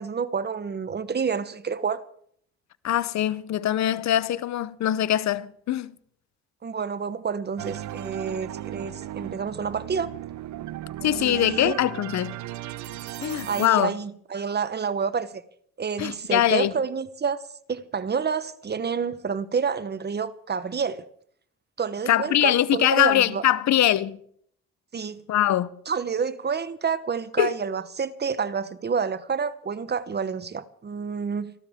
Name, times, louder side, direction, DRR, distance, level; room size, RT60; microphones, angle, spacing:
voice 1, 0.0-2.0 6.6-10.1 11.1-11.8 13.5-15.4 15.8-17.4 17.7-21.0 21.8-23.4 24.9-25.2 25.9-31.5, right 6 dB, 35° right, 1.1 m, -29 dB
voice 2, 2.8-5.9 11.0-12.3 13.2-13.9 16.0-16.7 22.1-24.2 25.3-25.8 27.4-27.5, left 12 dB, 65° left, 0.8 m, -22 dB
sound 1, 7.6-13.7, right 13 dB, 70° right, 0.7 m, -36 dB
28.0 x 12.5 x 3.7 m
cardioid pair, 90°, 30 cm